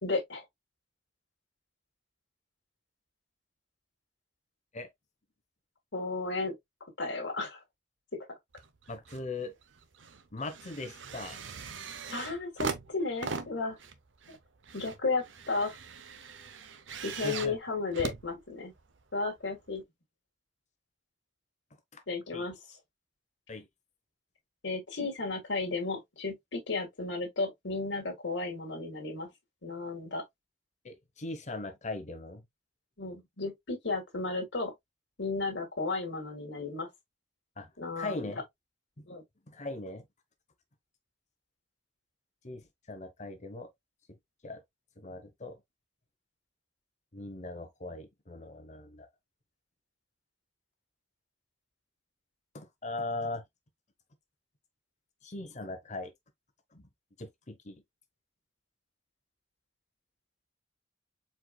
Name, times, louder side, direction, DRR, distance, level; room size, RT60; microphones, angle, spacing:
voice 1, 0.0-0.4 5.9-6.6 7.0-7.6 8.1-8.2 12.1-13.8 14.3-14.4 14.7-15.8 17.0-18.7 19.1-19.8 22.1-22.8 24.6-29.3 29.6-30.2 33.0-34.7 35.2-36.9 37.8-38.2 39.1-39.2, left 3 dB, 75° left, 1.8 m, -34 dB
sound 1, 8.5-9.3 9.6-19.0 19.8-19.9, right 5 dB, 90° right, 0.8 m, -41 dB
voice 2, 8.9-9.5 10.3-11.4 17.2-17.5 21.9-22.0 22.3-22.4 23.5-23.7 30.8-32.4 37.6-37.7 38.0-38.4 39.0-39.1 39.5-40.0 42.4-43.7 44.4-44.6 45.0-45.6 47.1-49.1 52.5-53.4 55.2-56.1 56.7-56.9 57.2-57.8, left 2 dB, 40° left, 1.0 m, -39 dB
4.6 x 4.5 x 2.3 m
head